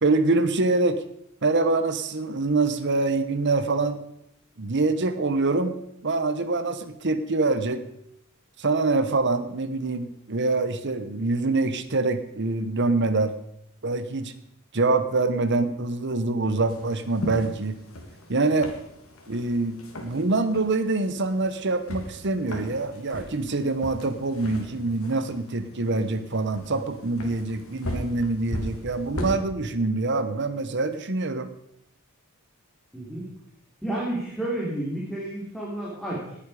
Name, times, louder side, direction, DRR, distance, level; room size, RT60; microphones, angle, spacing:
voice 1, 0.0-1.0 1.4-4.0 4.6-5.8 6.0-7.8 8.6-13.3 13.8-14.3 14.7-17.8 18.3-18.7 19.3-31.5, right 3 dB, 55° right, 11 dB, 1.1 m, -25 dB
sound 1, 16.7-29.4, equal, 85° left, 2.7 m, -38 dB
voice 2, 32.9-33.3 33.8-36.4, right 1 dB, ahead, -6 dB, 3.3 m, -31 dB
19.0 x 8.8 x 4.9 m, 0.78 s
head